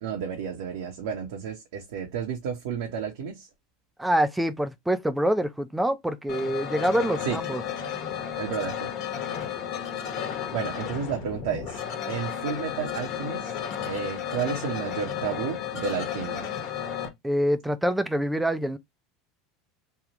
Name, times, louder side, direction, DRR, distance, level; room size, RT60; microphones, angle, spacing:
voice 1, 0.0-3.5 7.2-7.4 8.4-8.9 10.5-13.5 13.9-16.5, right 7 dB, 75° right, 1.0 m, -32 dB
voice 2, 4.0-7.6 17.2-18.8, equal, 5° right, 0.5 m, -25 dB
sound 1, 6.3-17.1, left 8 dB, 55° left, 1.2 m, -33 dB
3.5 x 2.3 x 3.0 m
hypercardioid pair, 90°, 0 cm